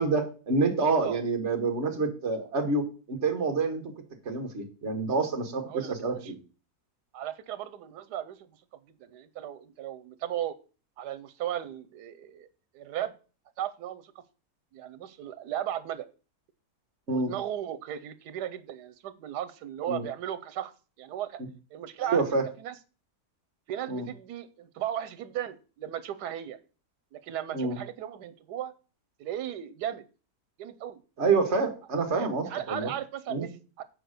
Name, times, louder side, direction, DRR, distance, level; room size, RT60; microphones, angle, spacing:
voice 1, 0.0-3.9 4.3-6.3 17.1-17.3 19.9-20.0 22.1-22.4 23.9-24.1 27.5-27.8 31.2-32.9 33.3-33.5, right 4 dB, 45° right, 5 dB, 1.7 m, -27 dB
voice 2, 5.7-6.3 7.1-8.6 9.0-10.6 11.0-12.5 12.7-13.1 13.6-14.1 14.7-16.1 17.1-20.7 21.0-21.4 21.7-22.7 23.7-26.6 27.1-28.7 29.2-30.0 30.6-31.0 32.1-33.8, right 11 dB, 85° right, 13 dB, 1.3 m, -36 dB
7.8 x 4.9 x 6.5 m, 0.35 s
omnidirectional pair, 1.7 m